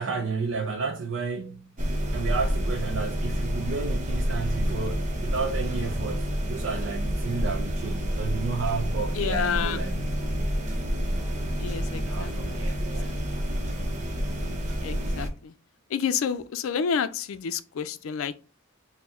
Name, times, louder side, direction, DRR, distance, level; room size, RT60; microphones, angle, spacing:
voice 1, 0.0-1.7 2.1-10.0 12.0-13.2, right 4 dB, 65° right, 0.5 m, -32 dB
sound 1, 1.8-15.3, equal, 35° right, 0.7 m, -28 dB
voice 2, 9.1-9.8 11.6-12.6 13.0-13.2 14.8-15.5 15.9-18.3, left 7 dB, 80° left, 0.4 m, -29 dB
4.4 x 2.1 x 4.2 m
head